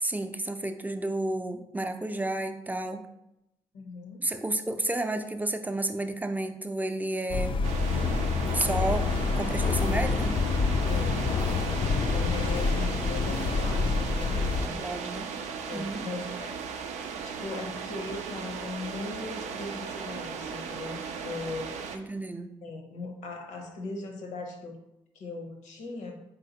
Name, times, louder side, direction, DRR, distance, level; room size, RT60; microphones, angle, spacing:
voice 1, 0.0-3.1 4.2-7.6 8.5-10.4 14.7-15.3 15.7-16.0 21.9-22.5, right 2 dB, 15° right, 7 dB, 0.5 m, -31 dB
voice 2, 3.7-4.2 10.9-11.3 11.6-14.8 15.7-16.6 17.2-21.8 22.6-24.8 25.1-26.2, left 3 dB, 80° left, 2 dB, 0.8 m, -39 dB
sound 1, 7.3-14.7, left 4 dB, 45° left, 0.4 m, -27 dB
sound 2, 7.6-22.0, right 6 dB, 75° right, 0.4 m, -37 dB
4.1 x 3.7 x 2.8 m, 0.84 s
hypercardioid pair, 45°, 12 cm